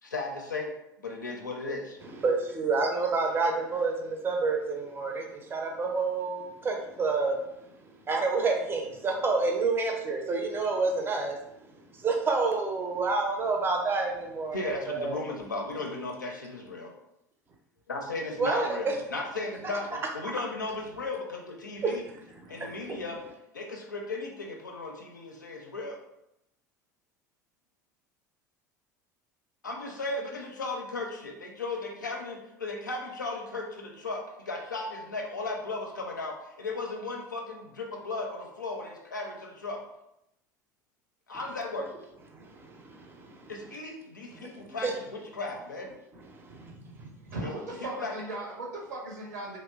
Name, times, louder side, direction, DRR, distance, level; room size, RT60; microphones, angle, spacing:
voice 1, 0.0-0.7 1.0-2.0 14.5-16.9 17.9-22.1 22.5-23.2 23.5-26.0 29.6-39.8 41.3-41.9 43.5-45.9 47.4-47.5 47.8-48.1, left 3 dB, 85° left, 1 dB, 0.4 m, -36 dB
voice 2, 2.2-7.4 8.1-11.4 11.9-15.3 18.4-18.9 20.2-20.3 21.8-22.0 22.4-23.0 42.3-43.5 44.4-44.5 44.8-44.9 46.3-47.1, right 3 dB, 25° right, 2 dB, 0.5 m, -29 dB
voice 3, 46.5-49.6, right 2 dB, 70° right, -2 dB, 0.7 m, -38 dB
2.8 x 2.0 x 2.2 m, 0.84 s
figure-of-eight pair, 70°, 10 cm